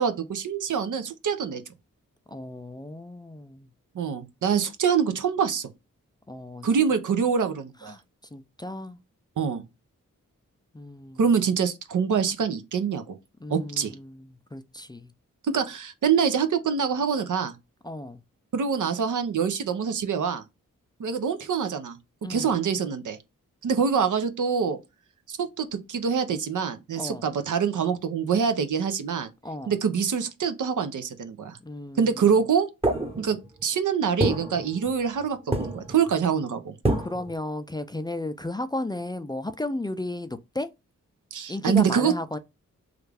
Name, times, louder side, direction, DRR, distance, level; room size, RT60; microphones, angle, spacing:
voice 1, 0.0-1.6 3.9-5.7 6.6-7.9 9.4-9.6 11.2-13.2 13.5-13.9 15.4-17.5 18.5-20.4 21.0-22.0 22.3-23.2 23.6-24.8 25.3-29.3 29.7-31.6 32.0-32.7 33.2-36.7 41.3-42.1, right 6 dB, 65° right, 0.7 m, -25 dB
voice 2, 2.3-3.7 6.3-6.7 7.8-8.0 8.3-9.0 10.7-11.2 13.4-15.1 17.8-18.2 22.2-22.5 27.0-27.2 29.4-29.7 31.6-32.3 37.0-40.7 41.5-42.4, left 2 dB, 15° left, 0.4 m, -34 dB
sound 1, 32.8-33.6 34.2-35.2 35.5-36.1 36.8-37.3, right 2 dB, 15° right, 0.9 m, -27 dB
3.3 x 2.4 x 3.3 m
cardioid pair, 40°, 33 cm